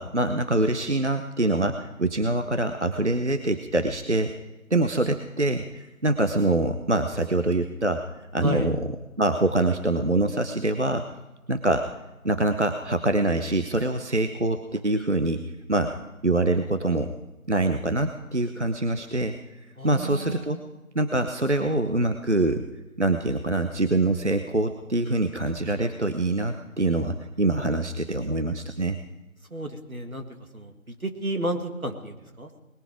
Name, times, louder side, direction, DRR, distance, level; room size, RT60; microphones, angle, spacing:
voice 1, 0.0-4.3 4.7-8.0 8.3-8.9 9.2-11.1 11.5-11.9 12.2-15.9 16.2-17.1 17.5-20.6 20.9-22.6 23.0-29.0, right 2 dB, 55° right, 8 dB, 0.8 m, -25 dB
voice 2, 8.4-8.7 19.8-20.7 29.5-30.2 30.5-30.7 31.0-32.6, right 1 dB, 75° right, 5 dB, 2.2 m, -32 dB
20.0 x 10.5 x 4.9 m, 1.1 s
figure-of-eight pair, 180°, 42 cm